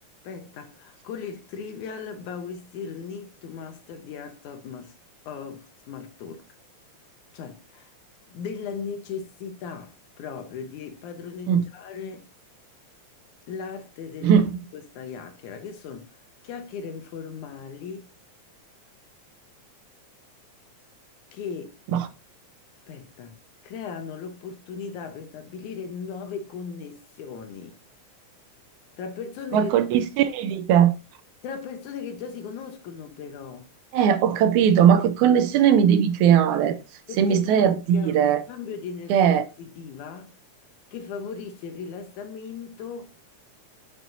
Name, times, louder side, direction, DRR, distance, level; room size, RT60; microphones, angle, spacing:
voice 1, 0.2-4.9 5.3-6.5 7.3-7.9 8.3-12.3 13.5-14.4 14.7-16.1 16.4-18.1 21.3-21.8 22.9-23.4 23.6-27.8 29.0-29.7 31.4-33.7 37.1-39.3 39.6-40.4 40.9-43.1, left 6 dB, 75° left, 2.4 m, -37 dB
voice 2, 29.5-31.0 33.9-36.8 37.2-38.4 39.1-39.5, right 8 dB, 80° right, 1.9 m, -19 dB
7.8 x 6.1 x 2.7 m
omnidirectional pair, 3.5 m